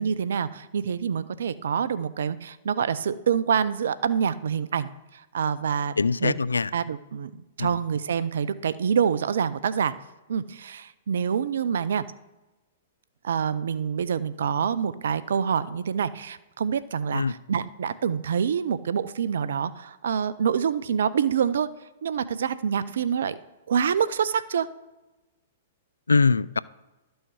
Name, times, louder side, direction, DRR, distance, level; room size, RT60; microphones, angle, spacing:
voice 1, 0.0-5.9 6.2-6.3 6.7-9.9 10.3-12.0 13.2-21.7 22.0-23.4 23.7-24.7, right 7 dB, 70° right, 15 dB, 0.5 m, -26 dB
voice 2, 6.0-6.7 7.6-7.7 17.1-17.3 26.1-26.6, left 4 dB, 90° left, 20 dB, 0.3 m, -22 dB
12.5 x 6.3 x 4.8 m, 1.1 s
hypercardioid pair, 115°, 0 cm